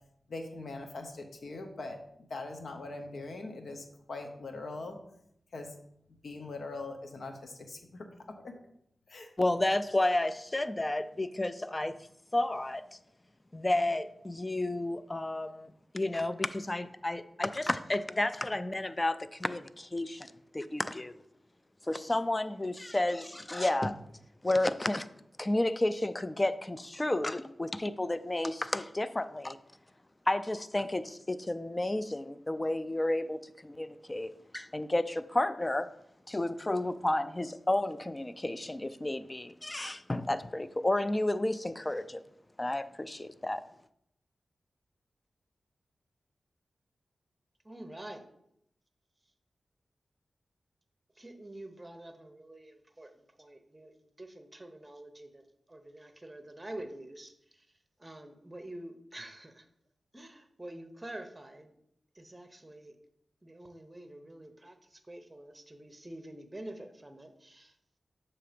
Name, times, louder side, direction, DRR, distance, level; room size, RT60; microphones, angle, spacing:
voice 1, 0.3-2.0 2.3-5.0 5.5-5.7 6.2-8.1 8.4-8.6 9.1-9.3, left 2 dB, 75° left, 4 dB, 0.8 m, -41 dB
voice 2, 9.4-12.0 12.3-12.8 13.5-21.2 21.9-24.0 24.4-25.1 25.4-29.6 30.3-35.9 36.3-42.2 42.6-43.6, left 1 dB, 25° left, 13 dB, 0.3 m, -31 dB
voice 3, 47.6-48.2 51.2-57.7 58.0-59.7 60.1-61.7 62.1-63.0 63.4-67.7, right 1 dB, 20° right, 6 dB, 0.7 m, -47 dB
6.7 x 2.9 x 5.0 m, 0.74 s
cardioid pair, 65°, 0 cm